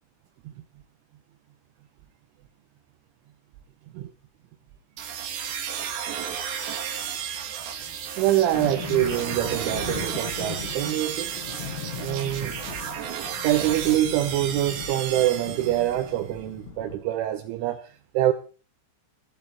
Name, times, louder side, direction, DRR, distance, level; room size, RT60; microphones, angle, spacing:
sound 1, 5.0-16.1, right 8 dB, 65° right, 4.0 m, -33 dB
sound 2, 7.2-7.4 7.7-8.0 8.2-17.0, left 6 dB, 60° left, 5.5 m, -38 dB
voice 1, 8.2-11.3 12.0-12.6 13.4-18.3, right 14 dB, 80° right, 3.3 m, -25 dB
14.5 x 14.0 x 4.2 m
omnidirectional pair, 5.8 m